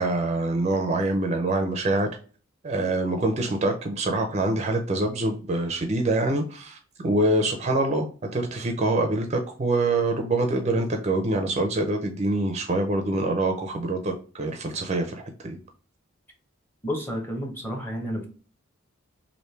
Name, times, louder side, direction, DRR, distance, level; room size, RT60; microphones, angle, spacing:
voice 1, 0.0-2.1 2.6-15.1 15.4-15.6, right 2 dB, 30° right, 4 dB, 0.4 m, -25 dB
voice 2, 16.8-18.3, equal, 10° left, 1 dB, 0.8 m, -30 dB
3.2 x 2.5 x 3.1 m, 0.39 s
head